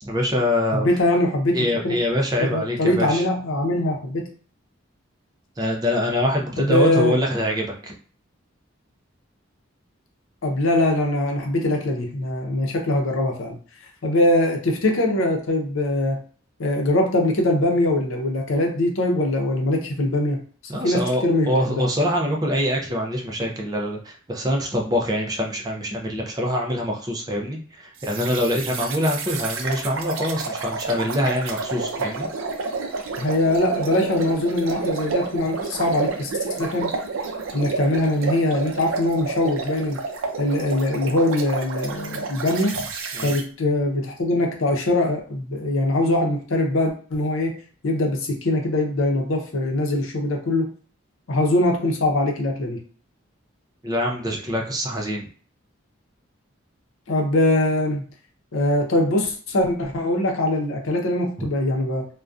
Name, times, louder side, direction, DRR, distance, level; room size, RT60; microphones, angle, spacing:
voice 1, 0.0-0.9 1.5-3.2 5.6-7.9 20.7-32.3 43.1-43.4 53.8-55.3, equal, 20° right, 0 dB, 0.4 m, -24 dB
voice 2, 0.7-2.0 2.4-4.3 6.6-7.2 10.4-13.6 14.0-16.2 16.6-20.4 20.8-21.8 33.2-36.3 36.6-37.0 37.5-40.0 40.4-42.8 43.2-47.5 47.8-50.7 51.3-52.8 57.1-58.0 58.5-62.1, left 1 dB, 80° left, 2 dB, 0.6 m, -22 dB
sound 1, 28.0-43.4, right 4 dB, 80° right, 0.4 m, -30 dB
2.5 x 2.2 x 2.3 m, 0.42 s
head